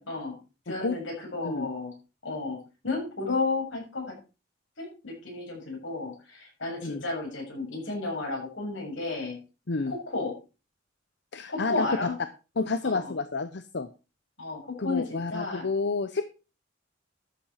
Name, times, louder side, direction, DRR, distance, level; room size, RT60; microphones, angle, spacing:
voice 1, 0.1-0.4 0.7-1.9 2.2-2.6 2.8-4.2 4.8-9.4 9.9-10.3 11.5-12.1 12.8-13.1 14.4-15.6, left 3 dB, 85° left, 0 dB, 6.9 m, -32 dB
voice 2, 11.3-11.9 12.6-13.9 14.8-16.2, left 3 dB, 60° left, 11 dB, 0.8 m, -30 dB
12.5 x 8.8 x 4.3 m, 0.32 s
head